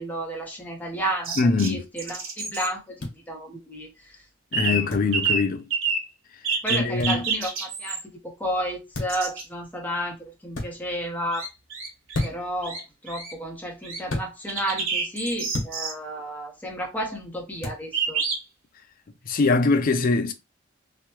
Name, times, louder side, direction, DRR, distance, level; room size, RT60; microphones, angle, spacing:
voice 1, 0.0-1.4 1.6-4.2 4.6-5.2 6.6-10.2 10.4-11.5 12.2-18.2, equal, 10° left, 0.8 m, -32 dB
sound 1, 1.2-1.7 2.0-2.7 4.5-4.9 5.1-5.4 5.7-6.1 6.4-8.0 9.1-9.4 11.3-12.3 12.6-12.8 13.1-13.3 13.8-14.0 14.5-15.9 17.9-18.4, right 4 dB, 75° right, 1.2 m, -27 dB
voice 2, 1.4-1.9 4.5-5.7 6.7-7.3 19.3-20.3, left 3 dB, 45° left, 0.4 m, -22 dB
sound 2, 3.0-3.1 4.9-5.1 7.0-7.2 8.9-9.3 10.5-10.7 12.1-12.5 14.1-14.3 15.5-15.8 17.6-17.8, left 1 dB, 80° left, 1.2 m, -30 dB
3.1 x 2.2 x 2.9 m
head